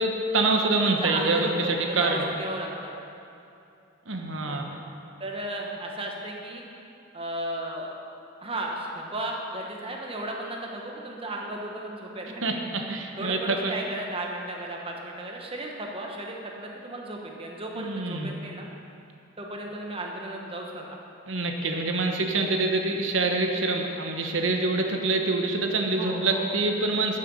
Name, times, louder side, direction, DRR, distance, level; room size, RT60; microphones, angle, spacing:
voice 1, 0.0-2.2 4.1-4.6 12.4-13.7 17.7-18.3 21.3-27.2, right 3 dB, 65° right, 3 dB, 1.1 m, -26 dB
voice 2, 0.9-2.9 4.5-4.8 5.2-6.6 7.1-8.0 8.4-12.6 13.2-18.7 19.4-20.8 25.9-26.4, right 1 dB, 30° right, 0 dB, 1.2 m, -35 dB
12.0 x 6.7 x 5.6 m, 2.7 s
head